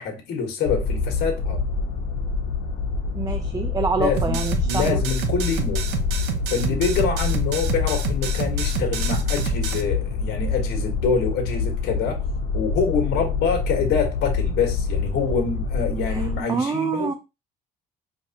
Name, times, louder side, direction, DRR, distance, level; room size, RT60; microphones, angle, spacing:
voice 1, 0.0-1.6 4.0-4.4 4.7-5.8 6.5-12.2 12.5-17.1, left 5 dB, 70° left, 1.4 m, -25 dB
sound 1, 0.7-16.4, left 4 dB, 85° left, 0.9 m, -26 dB
voice 2, 3.1-5.0 16.1-17.1, right 5 dB, 20° right, 0.5 m, -26 dB
sound 2, 4.2-9.8, right 4 dB, 80° right, 0.7 m, -28 dB
4.7 x 3.0 x 2.8 m
cardioid pair, 110°, 17 cm